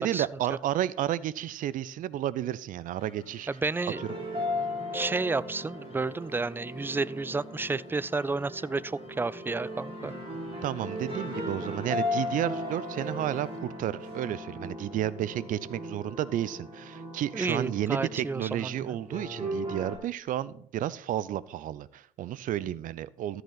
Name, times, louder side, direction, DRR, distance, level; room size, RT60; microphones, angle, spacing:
voice 1, 0.0-3.5 3.8-3.9 10.6-23.4, right 12 dB, 55° right, 19 dB, 0.6 m, -32 dB
sound 1, 3.0-13.6, left 3 dB, 35° left, 3.1 m, -55 dB
voice 2, 3.5-4.0 4.9-10.1 17.3-19.0, right 3 dB, 15° right, 21 dB, 0.4 m, -31 dB
sound 2, 3.9-20.0, left 1 dB, 35° right, 5.6 m, -37 dB
13.5 x 8.0 x 4.0 m, 0.64 s
hypercardioid pair, 55°, 16 cm